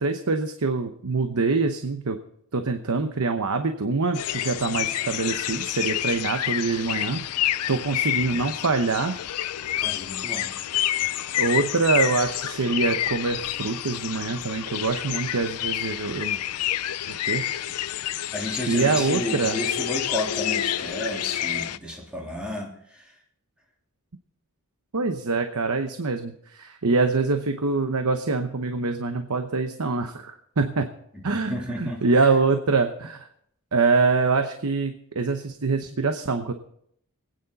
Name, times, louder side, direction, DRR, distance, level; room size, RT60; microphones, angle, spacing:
voice 1, 0.0-2.2 2.5-9.1 11.3-16.4 17.1-17.6 18.7-19.6 24.9-30.8 31.2-33.3 33.7-36.5, right 4 dB, 70° right, 6 dB, 0.9 m, -25 dB
sound 1, 4.1-21.8, left 12 dB, 80° left, 0.5 m, -28 dB
voice 2, 8.1-8.4 9.8-10.5 18.3-23.1 31.1-32.3, left 1 dB, 5° right, -2 dB, 3.3 m, -33 dB
25.0 x 9.4 x 4.1 m, 0.71 s
head